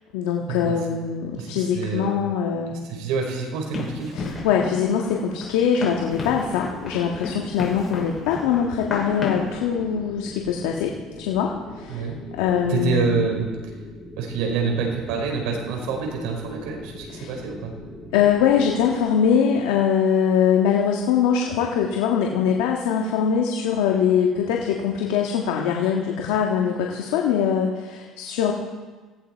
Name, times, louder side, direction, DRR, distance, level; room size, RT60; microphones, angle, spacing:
voice 1, 0.1-2.8 4.1-12.1 12.3-13.3 17.1-17.3 18.1-28.5, left 7 dB, 85° left, 0 dB, 1.6 m, -22 dB
voice 2, 1.7-2.1 2.7-4.3 11.9-12.1 12.7-13.5 14.2-17.7, right 5 dB, 80° right, 1 dB, 5.1 m, -27 dB
Run, 3.7-9.5, left 3 dB, 30° left, 6.3 m, -33 dB
sound 1, 5.9-19.0, left 1 dB, 10° left, 6.1 m, -41 dB
19.0 x 16.0 x 4.6 m, 1.4 s
supercardioid pair, 100°, 0 cm